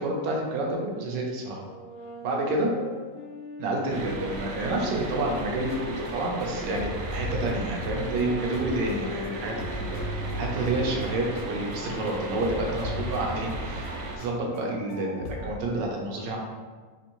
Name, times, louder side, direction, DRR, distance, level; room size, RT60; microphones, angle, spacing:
voice 1, 0.0-1.6 2.2-2.7 3.6-5.7 6.0-10.0 10.4-13.9 14.2-16.4, right 2 dB, 90° right, -1 dB, 1.4 m, -29 dB
sound 1, 1.7-7.3 8.0-13.5, left 4 dB, 85° left, 1.2 m, -42 dB
sound 2, 3.9-14.2, right 2 dB, 65° right, 0.9 m, -36 dB
sound 3, 5.4-9.3 9.6-12.2 12.4-15.5, equal, 65° left, 0.8 m, -37 dB
4.7 x 2.6 x 2.9 m, 1.5 s
omnidirectional pair, 1.8 m